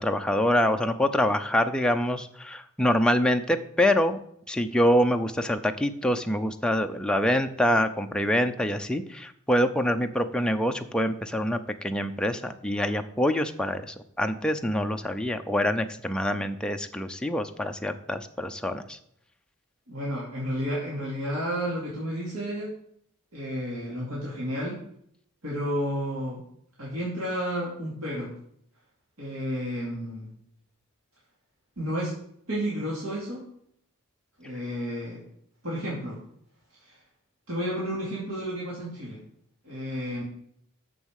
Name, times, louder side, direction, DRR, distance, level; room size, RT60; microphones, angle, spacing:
voice 1, 0.0-4.2 4.5-19.0, equal, 5° left, 5 dB, 0.6 m, -25 dB
voice 2, 19.9-22.7 23.3-24.8 25.4-26.4 26.8-28.3 29.2-30.3 31.8-32.1 32.5-33.4 34.4-35.2 35.6-36.2 36.8-37.0 37.5-39.2 39.6-40.2, equal, 70° right, -6 dB, 2.6 m, -31 dB
7.3 x 6.9 x 6.5 m, 0.70 s
head